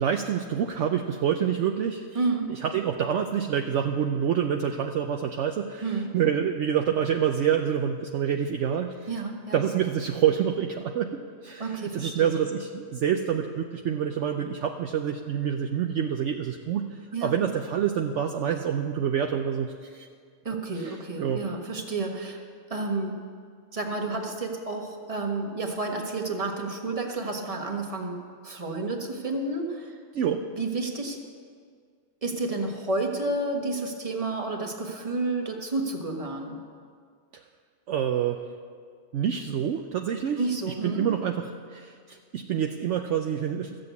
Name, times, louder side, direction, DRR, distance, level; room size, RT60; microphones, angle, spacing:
voice 1, 0.0-2.0 2.5-9.1 9.5-16.8 17.2-20.1 20.8-21.4 30.1-30.4 37.9-38.4 39.1-43.8, right 8 dB, 65° right, 5 dB, 0.9 m, -27 dB
voice 2, 2.1-2.5 5.8-6.1 9.1-9.6 11.6-12.4 17.1-17.3 20.4-22.4 22.7-23.2 23.7-30.0 30.5-31.2 32.2-36.6 40.4-41.1, right 3 dB, 25° right, 2 dB, 1.4 m, -30 dB
14.0 x 7.7 x 8.2 m, 2.1 s
omnidirectional pair, 1.4 m